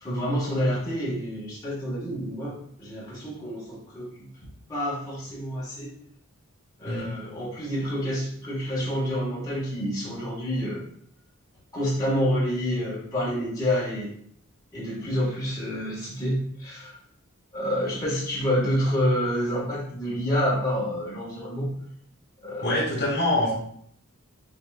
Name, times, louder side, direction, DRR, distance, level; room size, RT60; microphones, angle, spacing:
voice 1, 0.0-6.0 6.8-10.8 11.7-14.1 14.7-17.0 17.5-21.7 22.4-22.8, equal, 15° left, -6 dB, 1.4 m, -28 dB
voice 2, 22.6-23.5, left 1 dB, 50° left, -5 dB, 1.6 m, -24 dB
5.7 x 3.0 x 2.3 m, 0.65 s
head